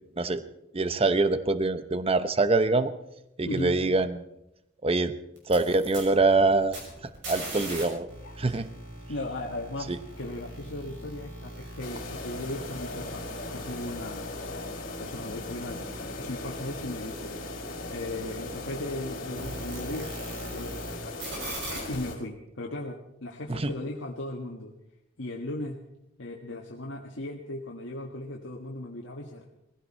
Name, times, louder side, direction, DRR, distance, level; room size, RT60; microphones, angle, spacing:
voice 1, 0.7-2.9 3.4-4.2 4.8-5.1 5.5-6.8 7.3-8.1 8.4-8.7 9.9-10.0 23.5-23.7, right 3 dB, 30° right, 12 dB, 0.7 m, -24 dB
voice 2, 3.4-3.8 8.2-8.6 9.1-13.2 13.5-15.8 16.1-17.4 17.9-20.2 20.5-21.2 21.9-24.7 25.2-25.8 26.2-29.5, left 1 dB, 70° left, -1 dB, 1.6 m, -37 dB
sound 1, 5.4-20.9 21.2-22.0, right 1 dB, 65° right, 6.1 m, -41 dB
sound 2, 11.8-22.2, left 2 dB, 50° left, 4.3 m, -39 dB
20.0 x 15.5 x 4.4 m, 0.85 s
head